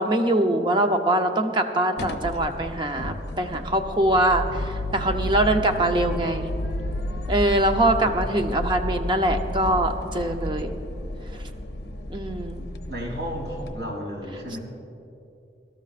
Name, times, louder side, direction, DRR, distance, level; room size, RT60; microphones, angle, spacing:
voice 1, 0.0-6.5 7.3-10.8 12.1-12.7, right 1 dB, 25° right, 5 dB, 0.7 m, -23 dB
sound 1, 2.0-13.7, left 1 dB, 70° left, 0.8 m, -32 dB
voice 2, 12.9-14.6, equal, 80° right, -2 dB, 3.3 m, -33 dB
23.0 x 12.5 x 2.5 m, 2.7 s
head